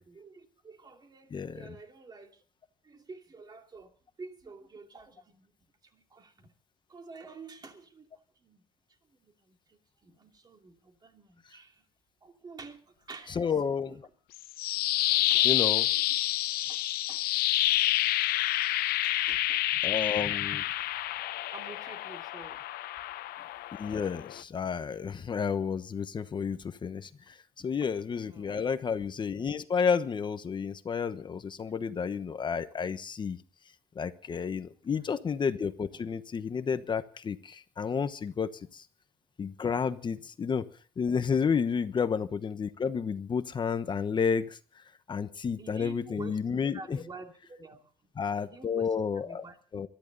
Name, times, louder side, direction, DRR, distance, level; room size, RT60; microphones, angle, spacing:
voice 1, 0.1-2.4 2.8-3.9 4.2-5.5 5.8-6.5 6.9-8.1 8.4-8.6 9.1-11.8 12.2-13.5 15.1-16.2 16.6-16.8 17.1-17.2 18.8-19.6 21.5-22.6 23.4-23.5 26.5-26.6 27.7-27.8 28.3-28.6 34.7-34.8 35.1-35.2 35.9-36.0 40.1-40.2 41.7-41.8 45.6-46.4 46.7-47.9 48.4-49.6, right 3 dB, 25° right, 4 dB, 2.7 m, -49 dB
voice 2, 1.3-1.7 13.3-14.0 15.4-15.9 19.8-20.6 23.8-33.4 33.9-38.8 39.4-40.7 41.0-44.6 45.1-47.0 48.2-49.4 49.7-49.9, left 6 dB, 30° left, 11 dB, 1.0 m, -31 dB
sound 1, 14.3-24.4, left 15 dB, 75° left, 0.7 m, -28 dB
22.5 x 13.5 x 4.0 m, 0.42 s
cardioid pair, 145°, 16 cm